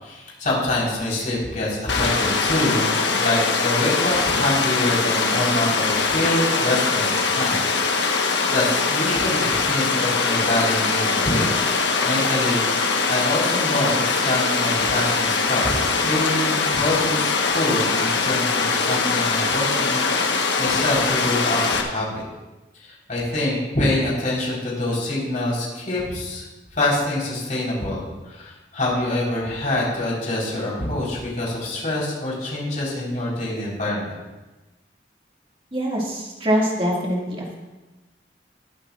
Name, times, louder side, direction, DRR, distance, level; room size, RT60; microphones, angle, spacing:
voice 1, 0.0-2.9 3.1-11.5 12.0-20.0 20.6-22.1 22.8-26.5 26.7-28.0 28.3-34.2, left 1 dB, 50° left, -6 dB, 4.2 m, -25 dB
Water, 1.9-21.8, left 4 dB, 80° left, 1.3 m, -22 dB
voice 2, 35.7-37.6, equal, 30° right, -2 dB, 2.2 m, -24 dB
20.0 x 8.6 x 2.5 m, 1.1 s
head